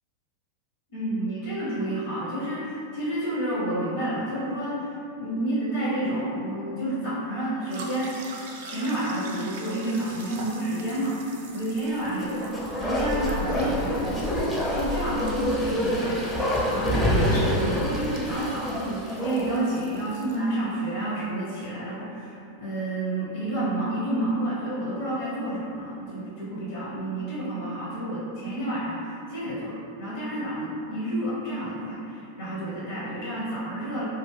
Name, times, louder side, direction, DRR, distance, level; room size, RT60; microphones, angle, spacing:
voice 1, 0.9-8.1 8.6-14.3 14.7-16.4 16.7-34.0, right 1 dB, 60° left, -8 dB, 0.6 m, -30 dB
sound 1, 7.7-20.4, right 3 dB, 55° right, 0.3 m, -46 dB
Bark, 12.1-19.7 20.0-20.1, equal, 10° left, 0.4 m, -27 dB
sound 2, 17.3-18.2, left 1 dB, 90° left, 1.1 m, -34 dB
2.3 x 2.0 x 3.1 m, 2.6 s
figure-of-eight pair, 90°, 0 cm